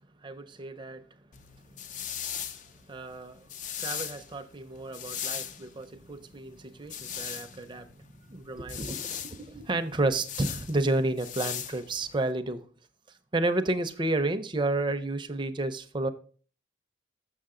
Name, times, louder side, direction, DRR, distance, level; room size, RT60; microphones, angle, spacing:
voice 1, 0.2-1.0 2.9-3.5 3.8-12.7 13.3-16.1, right 2 dB, 25° right, 9 dB, 0.5 m, -31 dB
sound 1, 1.3-12.3, left 9 dB, 40° left, 0.4 m, -39 dB
6.5 x 6.4 x 3.7 m, 0.42 s
head